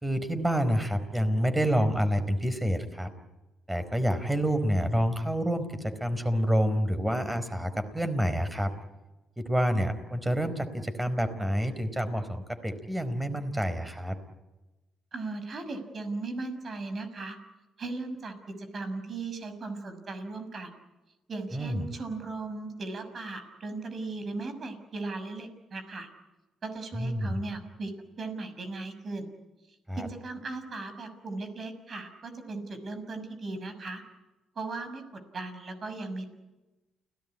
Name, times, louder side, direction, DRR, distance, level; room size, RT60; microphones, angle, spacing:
voice 1, 0.0-3.1 3.7-8.7 9.4-14.2 21.5-21.9 26.9-27.4 29.9-30.1, equal, 10° right, 10 dB, 4.6 m, -28 dB
voice 2, 15.1-17.4 17.8-20.7 21.3-26.1 26.6-27.9 28.2-29.3 29.9-34.0 34.6-35.0 35.3-36.2, right 3 dB, 45° right, 9 dB, 6.2 m, -37 dB
29.5 x 18.0 x 9.8 m, 1.1 s
cardioid pair, 90°, 0 cm